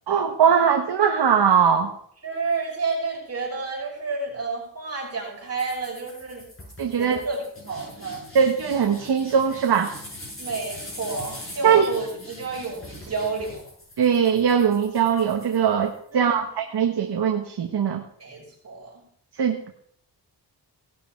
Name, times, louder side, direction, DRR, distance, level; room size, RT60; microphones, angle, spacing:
voice 1, 0.1-1.9 6.8-7.2 8.3-9.9 11.6-11.9 14.0-18.0 19.4-19.6, right 7 dB, 65° right, 3 dB, 1.5 m, -20 dB
voice 2, 2.2-6.4 6.9-7.4 7.6-8.2 10.4-13.6 16.1-16.4 18.2-19.0, right 4 dB, 35° right, -6 dB, 6.0 m, -30 dB
sound 1, 5.6-16.1, left 1 dB, 30° left, 7.6 m, -42 dB
18.0 x 12.0 x 4.6 m, 0.64 s
wide cardioid pair, 125°, 41 cm